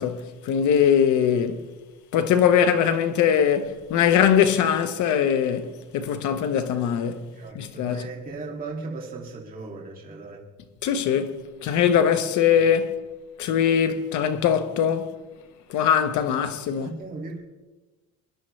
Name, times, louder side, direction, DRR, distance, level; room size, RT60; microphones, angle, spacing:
voice 1, 0.0-1.6 2.1-7.3 7.5-8.0 10.8-13.0 13.4-15.1 15.7-16.9, left 8 dB, 70° left, 1.2 m, -21 dB
voice 2, 7.2-10.4 16.7-17.4, right 3 dB, 30° right, 2.4 m, -37 dB
24.5 x 11.0 x 3.3 m
cardioid pair, 175°, 30 cm